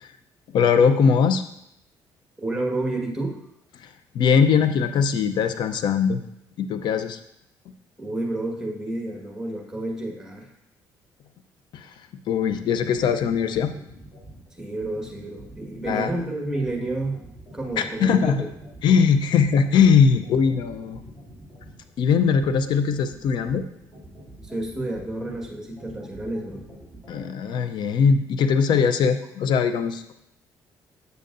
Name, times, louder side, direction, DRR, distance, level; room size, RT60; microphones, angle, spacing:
voice 1, 0.5-1.4 4.1-6.2 6.6-7.2 11.7-11.9 12.3-13.7 15.9-16.1 17.8-18.4 18.8-21.0 22.0-23.6 27.1-30.1, left 6 dB, 70° left, 9 dB, 0.5 m, -20 dB
voice 2, 2.4-3.4 8.0-10.5 14.6-17.2 17.5-18.4 24.4-26.6, right 2 dB, 10° right, 0 dB, 1.6 m, -30 dB
sound 1, 12.5-27.2, right 1 dB, 20° left, 3.0 m, -46 dB
8.0 x 6.7 x 2.5 m, 0.78 s
cardioid pair, 85°, 8 cm